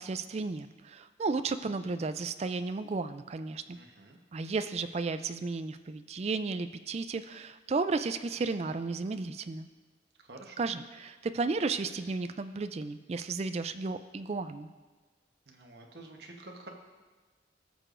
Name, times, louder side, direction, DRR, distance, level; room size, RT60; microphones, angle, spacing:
voice 1, 0.0-3.8 4.3-9.7 10.6-14.7, right 4 dB, 35° right, 10 dB, 0.3 m, -33 dB
voice 2, 3.7-4.2 10.2-10.7 15.5-16.7, right 2 dB, 60° right, 1 dB, 1.0 m, -49 dB
17.0 x 6.6 x 2.5 m, 1.3 s
head